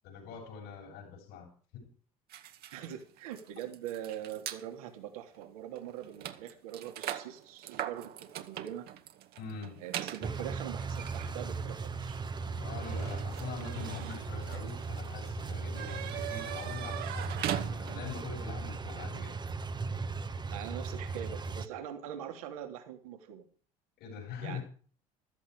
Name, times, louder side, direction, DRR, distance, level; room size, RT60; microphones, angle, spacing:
voice 1, 0.0-1.9 9.4-9.8 12.5-19.4 24.0-24.6, left 5 dB, 65° left, 7.7 m, -43 dB
sound 1, 2.3-4.6 5.3-5.5 5.7-18.2, right 11 dB, 60° right, 2.0 m, -42 dB
voice 2, 2.7-8.9 9.8-12.3 20.5-23.5 24.4-24.6, right 10 dB, 75° right, 3.0 m, -43 dB
sound 2, 10.2-21.7, right 4 dB, 25° right, 1.4 m, -38 dB
15.0 x 14.0 x 4.9 m
hypercardioid pair, 65°, 18 cm